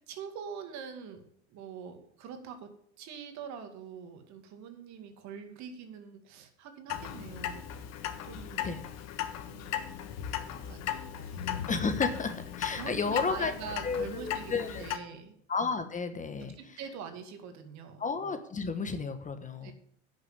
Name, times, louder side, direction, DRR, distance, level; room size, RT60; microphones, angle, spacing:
voice 1, 0.0-2.7 3.0-7.9 8.2-8.8 9.4-10.1 10.3-11.6 12.7-15.3 16.4-18.0 19.6-19.7, right 7 dB, 55° right, 7 dB, 2.2 m, -44 dB
Clock, 6.9-15.0, left 10 dB, 50° left, 1.4 m, -37 dB
voice 2, 11.7-13.5 13.8-14.8 15.5-16.5 18.0-19.7, left 4 dB, 20° left, 9 dB, 1.2 m, -32 dB
10.5 x 6.6 x 7.3 m, 0.68 s
hypercardioid pair, 95°, 34 cm